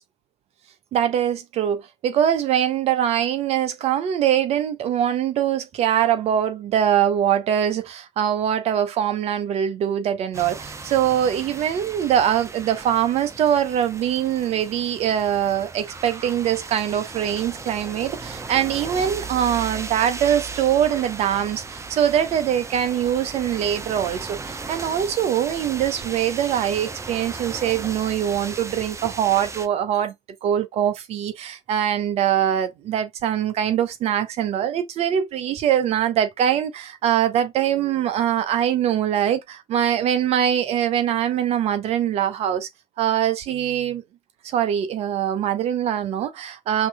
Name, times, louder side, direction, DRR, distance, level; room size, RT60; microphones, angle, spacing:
voice 1, 0.9-30.1 30.4-42.7 43.0-44.0 44.4-46.9, right 10 dB, 50° right, 0.8 m, -23 dB
sound 1, 10.3-29.7, right 4 dB, 20° right, 0.7 m, -36 dB
5.8 x 2.8 x 2.2 m
figure-of-eight pair, 50°, 13 cm